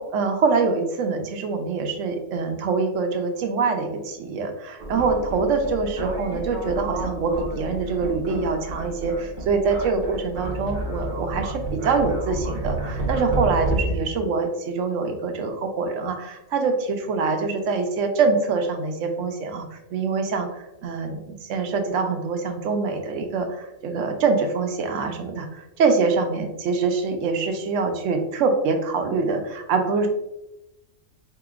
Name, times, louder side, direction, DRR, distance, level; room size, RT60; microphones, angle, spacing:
voice 1, 0.0-30.1, right 4 dB, 75° right, 5 dB, 0.9 m, -24 dB
sound 1, 4.8-14.0, right 1 dB, 50° right, 0.6 m, -30 dB
4.1 x 2.8 x 2.4 m, 0.91 s
omnidirectional pair, 1.4 m